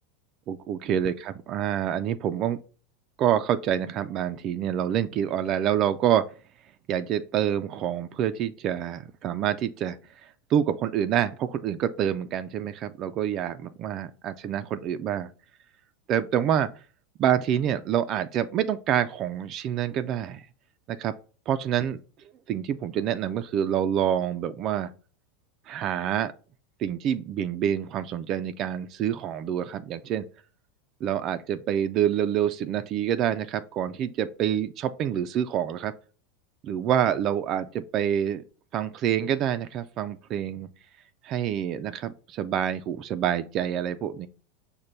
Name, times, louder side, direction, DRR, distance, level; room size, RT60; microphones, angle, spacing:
voice 1, 0.5-2.6 3.2-6.3 6.9-10.0 10.2-15.3 16.1-16.7 17.2-20.5 20.9-21.1 21.5-22.0 22.5-24.9 25.7-26.3 26.8-30.2 31.0-35.9 36.6-38.4 38.7-40.7 41.2-44.3, right 10 dB, 45° right, 0.3 m, -27 dB
5.1 x 2.2 x 4.3 m
hypercardioid pair, 110°, 0 cm